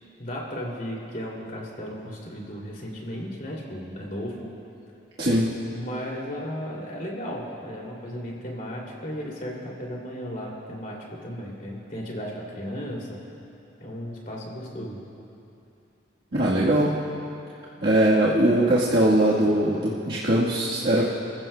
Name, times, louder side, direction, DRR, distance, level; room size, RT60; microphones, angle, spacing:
voice 1, 0.2-4.5 5.7-13.2 13.8-15.0, equal, 45° left, -3 dB, 2.6 m, -35 dB
voice 2, 5.2-5.5 16.3-17.0 17.8-21.1, right 1 dB, 55° right, -7 dB, 1.4 m, -21 dB
29.0 x 15.0 x 2.2 m, 2.7 s
head